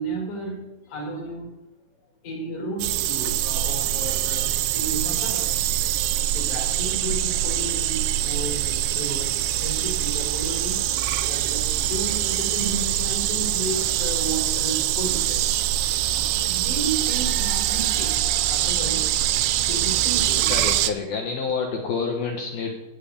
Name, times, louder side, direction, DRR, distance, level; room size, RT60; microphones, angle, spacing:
voice 1, 0.0-1.5 2.2-5.4 6.3-10.9 11.3-15.4 16.1-19.0 19.7-20.5, right 2 dB, 35° left, -3 dB, 6.2 m, -33 dB
sound 1, 2.8-20.9, right 12 dB, 85° right, 3.3 m, -24 dB
voice 2, 20.5-22.7, left 5 dB, 70° left, 2 dB, 2.5 m, -28 dB
17.5 x 6.1 x 8.5 m, 1.0 s
omnidirectional pair, 5.8 m